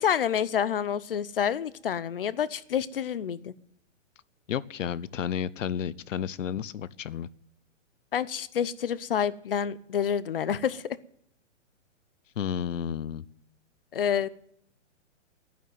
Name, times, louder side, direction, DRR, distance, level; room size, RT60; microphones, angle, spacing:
voice 1, 0.0-3.5 8.1-11.0 13.9-14.3, left 8 dB, 50° left, 20 dB, 0.6 m, -28 dB
voice 2, 4.5-7.3 12.4-13.2, left 9 dB, 90° left, 21 dB, 0.8 m, -32 dB
11.0 x 9.4 x 9.3 m, 0.70 s
hypercardioid pair, 180°, 37 cm